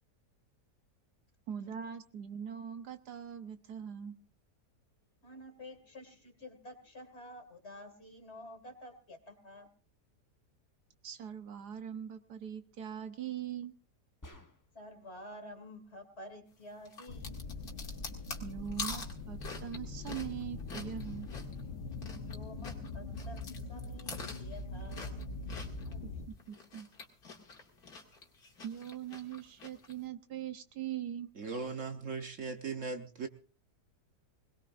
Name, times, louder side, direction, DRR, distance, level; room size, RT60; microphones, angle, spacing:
voice 1, 1.5-4.2 11.0-13.7 18.4-21.3 26.3-26.9 28.6-31.3, right 9 dB, 75° right, 9 dB, 1.6 m, -41 dB
voice 2, 5.2-9.7 14.7-17.4 22.2-26.0, left 1 dB, 40° left, 7 dB, 2.4 m, -50 dB
sound 1, 14.2-14.9, left 1 dB, 15° left, 1.0 m, -53 dB
sound 2, 16.8-22.4 22.6-26.0 26.4-29.9, left 4 dB, 65° left, 2.5 m, -45 dB
sound 3, 17.1-26.3, left 3 dB, 80° left, 1.8 m, -42 dB
voice 3, 31.3-33.3, right 4 dB, 50° right, 6 dB, 1.3 m, -38 dB
21.5 x 19.5 x 2.5 m, 0.36 s
omnidirectional pair, 1.8 m